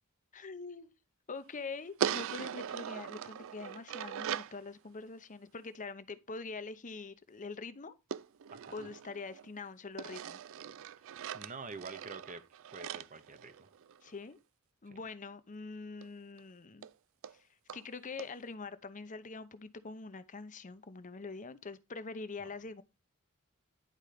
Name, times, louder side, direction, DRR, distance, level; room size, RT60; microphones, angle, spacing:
voice 1, 0.3-0.9 1.3-7.9 8.7-10.4 14.0-14.4 14.8-16.9 17.3-17.5 17.7-22.8, left 4 dB, 35° left, 0.7 m, -44 dB
sound 1, 2.0-4.6 8.1-9.5 10.0-14.1 16.0-16.1 16.4-16.5 16.8-16.9 17.2-17.3 17.7-17.8 18.2-18.3, right 9 dB, 65° right, 0.4 m, -40 dB
voice 2, 8.5-8.9 11.0-12.4 12.7-13.7 14.9-15.0 22.4-22.5, right 4 dB, 35° right, 0.9 m, -48 dB
11.0 x 4.5 x 5.0 m
head